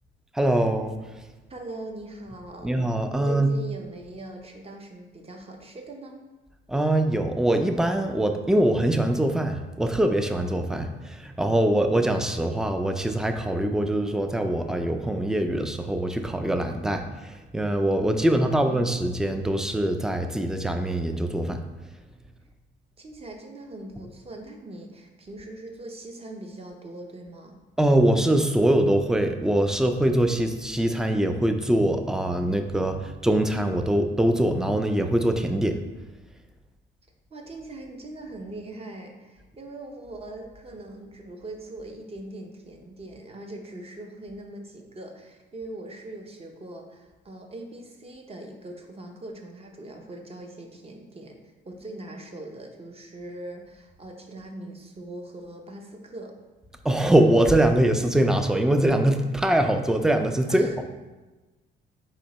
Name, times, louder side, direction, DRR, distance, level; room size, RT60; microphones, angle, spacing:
voice 1, 0.3-1.0 2.6-3.5 6.7-21.6 27.8-35.8 56.8-60.8, right 1 dB, 5° right, 6 dB, 0.3 m, -23 dB
voice 2, 1.5-2.8 3.1-6.2 18.1-19.0 23.0-27.6 37.3-56.3 59.4-59.5 60.5-60.8, right 2 dB, 30° right, 3 dB, 0.7 m, -41 dB
4.4 x 2.8 x 4.0 m, 1.2 s
cardioid pair, 90°, 20 cm